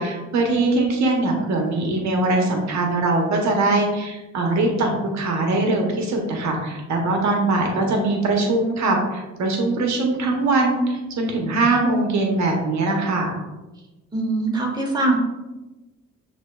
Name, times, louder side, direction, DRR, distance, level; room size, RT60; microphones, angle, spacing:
voice 1, 0.0-13.3, right 2 dB, 65° right, 1 dB, 0.8 m, -21 dB
voice 2, 14.1-15.1, right 2 dB, 15° right, -1 dB, 1.2 m, -22 dB
7.2 x 2.7 x 2.2 m, 1.1 s
cardioid pair, 90°, 30 cm